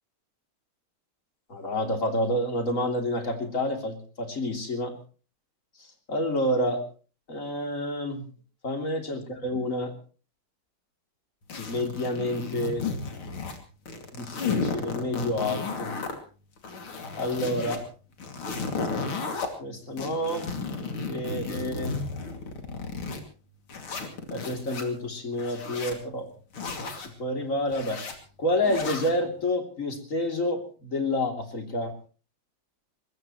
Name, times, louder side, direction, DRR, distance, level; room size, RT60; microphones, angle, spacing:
voice 1, 1.5-4.9 6.1-6.8 7.3-8.2 8.6-9.9 11.6-12.9 14.1-15.9 17.2-17.8 19.6-20.5 21.1-22.0 24.3-26.3 27.2-31.9, left 1 dB, 35° left, 4 dB, 3.4 m, -29 dB
sound 1, 11.5-13.6 13.9-16.1 16.6-17.8 18.2-19.5 20.0-23.2 23.7-24.8 25.3-26.0 26.5-27.1 27.7-28.1 28.6-29.2, left 4 dB, 75° left, 3.4 m, -33 dB
23.0 x 20.0 x 3.1 m, 0.38 s
omnidirectional pair, 2.4 m